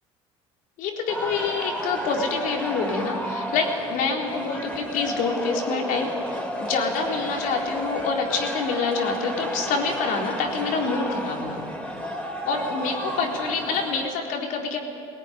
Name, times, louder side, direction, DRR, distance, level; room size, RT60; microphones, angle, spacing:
voice 1, 0.8-11.7 12.5-14.8, left 4 dB, 65° left, 1 dB, 3.9 m, -27 dB
sound 1, 1.1-14.1, equal, 5° left, 4.4 m, -32 dB
19.0 x 18.0 x 10.0 m, 2.5 s
supercardioid pair, 80°, 15 cm